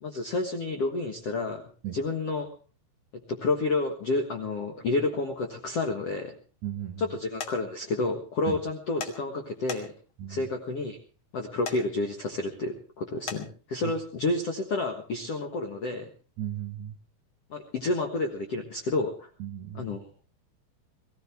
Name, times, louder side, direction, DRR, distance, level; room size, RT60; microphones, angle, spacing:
voice 1, 0.0-1.6 1.9-2.5 3.3-6.4 7.0-9.9 10.3-11.0 11.3-16.0 17.5-19.3 19.7-20.0, left 2 dB, 65° left, 3 dB, 1.5 m, -30 dB
voice 2, 6.6-7.1 8.5-8.6 10.2-10.5 13.8-13.9 16.4-17.0 19.4-19.9, right 11 dB, 65° right, 8 dB, 1.9 m, -36 dB
sound 1, 7.4-7.5 9.0-9.1 9.7-10.1 11.7-11.8 13.3-13.4, left 5 dB, 90° left, 1.1 m, -35 dB
22.5 x 16.0 x 3.4 m, 0.36 s
omnidirectional pair, 5.0 m